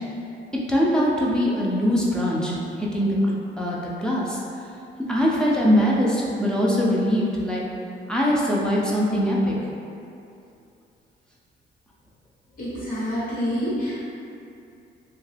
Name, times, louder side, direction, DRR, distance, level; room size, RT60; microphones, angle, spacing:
voice 1, 0.7-3.2 3.6-4.4 5.1-7.6 8.1-9.5, equal, 5° left, -5 dB, 0.3 m, -22 dB
voice 2, 12.6-14.0, equal, 45° left, -10 dB, 1.1 m, -27 dB
2.7 x 2.2 x 3.2 m, 2.6 s
cardioid pair, 150°, 19 cm